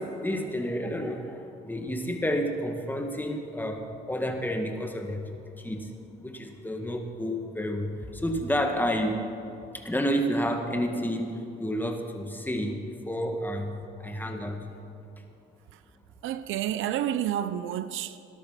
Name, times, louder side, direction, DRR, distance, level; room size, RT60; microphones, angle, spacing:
voice 1, 0.0-5.9 6.2-9.3 9.7-12.8 13.1-14.7, equal, 10° left, 2.0 m, -30 dB
voice 2, 16.2-18.2, right 11 dB, 85° right, 0.7 m, -30 dB
17.5 x 13.0 x 5.8 m
cardioid pair, 90°, 20 cm